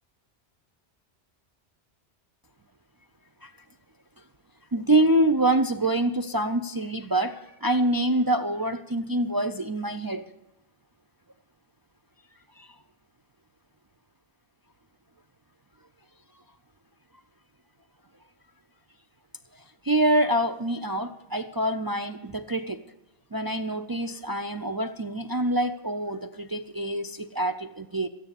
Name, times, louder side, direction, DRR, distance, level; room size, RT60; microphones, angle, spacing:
voice 1, 4.7-10.3 12.6-12.7 19.8-22.8 23.3-28.1, right 1 dB, 40° right, 7 dB, 0.3 m, -26 dB
13.0 x 9.5 x 8.2 m, 0.94 s
omnidirectional pair, 1.1 m